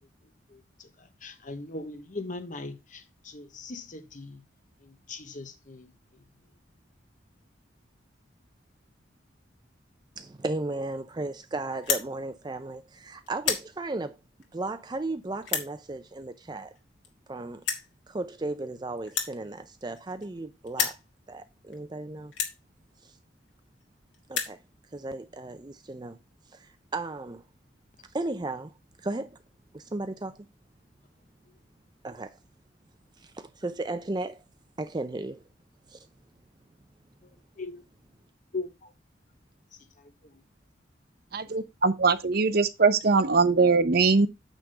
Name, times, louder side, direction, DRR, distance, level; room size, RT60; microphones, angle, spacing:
voice 1, 0.5-4.4 4.8-5.9 37.2-37.3 37.6-37.8 38.5-38.9 40.0-40.4, left 3 dB, 45° left, 1.1 m, -40 dB
voice 2, 10.2-14.2 14.5-16.7 17.3-17.6 18.1-21.0 21.3-22.3 23.0-23.2 24.3-24.6 24.9-26.2 26.5-27.4 28.1-28.7 29.0-29.4 29.7-30.5 32.0-32.4 33.2-34.4 34.8-35.4 35.9-36.0, right 2 dB, 25° right, 0.5 m, -35 dB
sound 1, 11.8-12.1 12.7-13.0 13.3-13.7 14.4-14.5 15.4-15.7 16.8-16.9 17.0-17.1 17.6-17.9 19.1-20.4 20.7-21.0 21.7-21.8 22.3-22.6 23.5-23.6 23.8-23.9 24.1-24.6, left 7 dB, 80° left, 2.0 m, -30 dB
voice 3, 41.3-44.3, right 4 dB, 55° right, 0.8 m, -22 dB
9.1 x 3.6 x 6.6 m
head